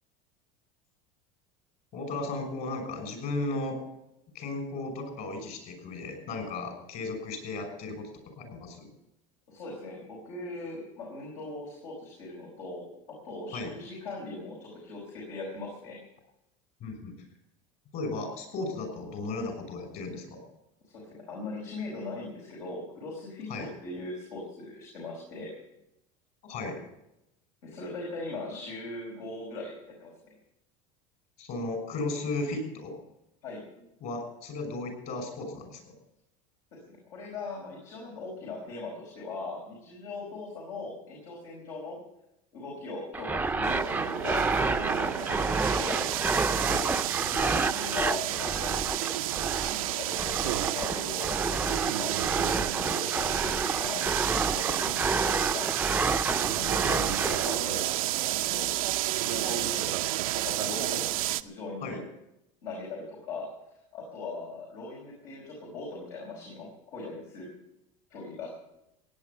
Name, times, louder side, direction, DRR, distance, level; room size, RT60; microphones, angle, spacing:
voice 1, 1.9-3.8 4.3-8.9 13.5-13.7 16.8-17.2 17.9-20.4 23.5-23.7 26.4-26.8 31.4-32.9 34.0-35.9 46.7-46.9 52.8-53.0 56.2-56.7 61.8-62.0, left 2 dB, 55° left, 5 dB, 6.1 m, -35 dB
voice 2, 9.5-12.9 13.2-16.0 20.8-25.5 27.6-29.7 30.0-30.1 33.4-33.6 36.9-42.0 42.5-46.0 47.2-48.9 49.5-52.2 52.4-55.7 56.5-59.9 60.3-61.0 61.4-62.0 62.6-63.5 63.9-67.5 68.1-68.5, left 3 dB, 85° left, -2 dB, 5.1 m, -40 dB
sound 1, 43.1-57.6, right 3 dB, 10° right, 0.6 m, -30 dB
sound 2, 43.6-61.4, right 16 dB, 85° right, 0.6 m, -31 dB
17.0 x 9.7 x 6.8 m, 0.84 s
supercardioid pair, 110°, 17 cm